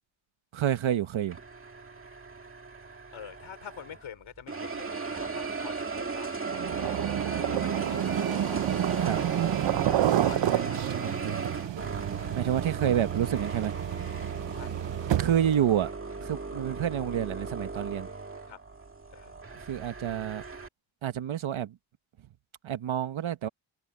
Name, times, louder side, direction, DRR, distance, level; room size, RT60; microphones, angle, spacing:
voice 1, 0.5-1.4 8.9-9.2 10.5-11.4 12.3-13.8 15.2-15.9 16.2-18.1 19.7-20.4 21.0-21.8 22.6-23.5, right 10 dB, 85° right, 1.3 m, -29 dB
sound 1, 1.3-4.1 4.5-20.7, right 4 dB, 25° right, 2.0 m, -36 dB
voice 2, 3.1-7.2 7.5-8.0 10.2-11.0 14.5-14.8 18.5-18.6 19.1-19.4, left 8 dB, 85° left, 4.6 m, -46 dB
sound 2, 6.5-15.6, right 12 dB, 70° right, 0.7 m, -30 dB
wide cardioid pair, 165°, 46 cm